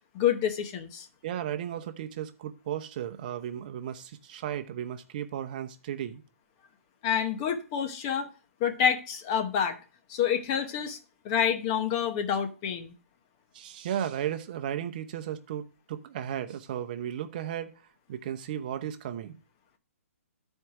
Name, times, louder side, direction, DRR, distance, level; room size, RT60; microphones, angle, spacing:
voice 1, 0.1-1.1 7.0-8.3 8.6-9.8 10.1-11.0 11.2-12.9, left 8 dB, 25° left, 0.9 m, -28 dB
voice 2, 1.2-6.2 13.5-17.7 18.1-19.4, right 10 dB, 35° right, 0.8 m, -35 dB
11.0 x 4.5 x 4.8 m
hypercardioid pair, 160°, 8 cm